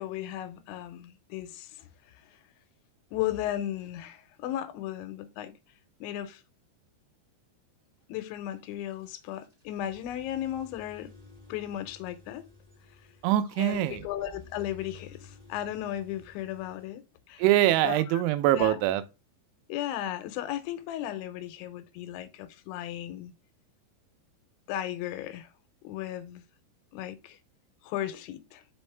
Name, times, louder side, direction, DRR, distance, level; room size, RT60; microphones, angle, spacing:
voice 1, 0.0-1.7 3.1-5.5 6.0-6.4 8.1-11.1 11.5-12.5 13.6-17.0 17.3-17.4 17.8-18.0 18.5-18.8 19.7-23.3 24.7-25.5 25.8-26.4 26.9-27.4 27.8-28.6, left 12 dB, 85° left, 3.0 m, -35 dB
sound 1, 8.3-16.9, left 4 dB, 25° right, 0.9 m, -53 dB
voice 2, 13.2-14.1 17.4-19.0, right 13 dB, 85° right, 3.1 m, -23 dB
5.6 x 5.3 x 3.2 m
omnidirectional pair, 5.3 m